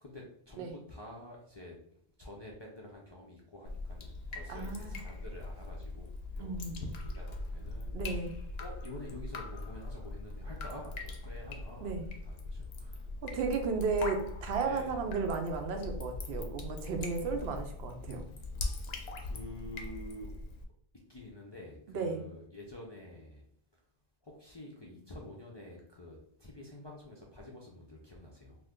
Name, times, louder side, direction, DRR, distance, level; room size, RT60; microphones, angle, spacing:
voice 1, 0.0-1.8 2.2-6.1 6.3-8.0 8.6-13.0 14.6-14.9 19.2-20.3 21.1-23.4 24.4-28.6, left 1 dB, 40° left, -4 dB, 0.4 m, -48 dB
Drip, 3.7-20.6, left 2 dB, 75° left, 0.8 m, -41 dB
voice 2, 4.5-5.0 6.4-6.9 7.9-8.3 11.8-12.1 13.2-18.2 21.9-22.2, right 4 dB, 80° right, 5 dB, 0.8 m, -34 dB
2.5 x 2.4 x 3.5 m, 0.67 s
omnidirectional pair, 1.0 m